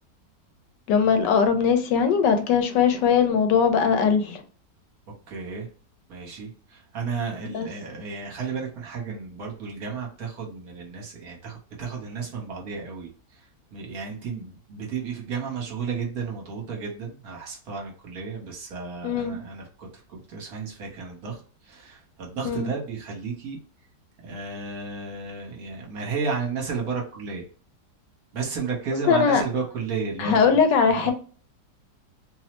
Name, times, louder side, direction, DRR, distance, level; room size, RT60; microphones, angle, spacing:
voice 1, 0.9-4.4 7.5-7.7 19.0-19.4 22.4-22.7 29.1-29.4 30.2-31.1, left 6 dB, 85° left, 1.2 m, -20 dB
voice 2, 5.1-5.7 6.1-23.6 24.2-27.5 28.3-30.4 30.9-31.1, right 5 dB, 60° right, 1.2 m, -33 dB
3.0 x 2.0 x 2.9 m
omnidirectional pair, 1.9 m